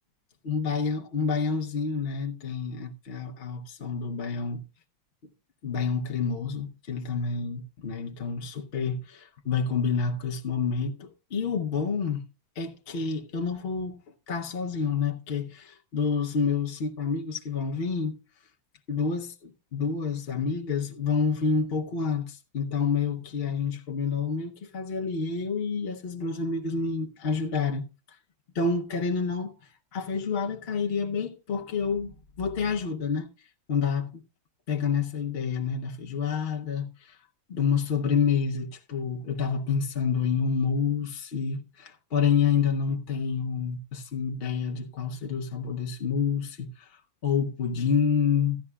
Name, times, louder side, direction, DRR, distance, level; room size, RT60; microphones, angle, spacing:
voice 1, 0.4-4.6 5.6-12.2 12.6-14.0 14.3-18.1 18.9-28.2 28.5-29.5 29.9-34.2 34.7-37.2 37.5-48.6, left 6 dB, 55° left, 0.6 m, -28 dB
14.5 x 11.0 x 2.2 m
omnidirectional pair, 2.1 m